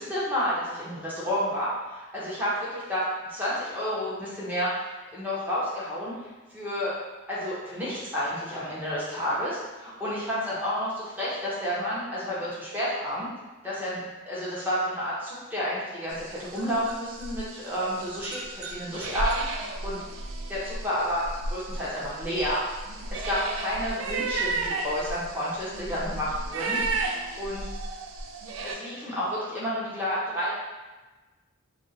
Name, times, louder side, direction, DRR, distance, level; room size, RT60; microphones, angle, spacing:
voice 1, 0.0-6.3 6.5-6.9 7.3-13.3 13.6-14.0 14.3-20.0 20.5-22.6 23.1-26.8 27.1-27.7 28.6-30.5, equal, 10° right, -9 dB, 0.9 m, -30 dB
sound 1, 16.1-28.8, right 3 dB, 65° right, 0.3 m, -34 dB
2.5 x 2.4 x 4.1 m, 1.2 s
head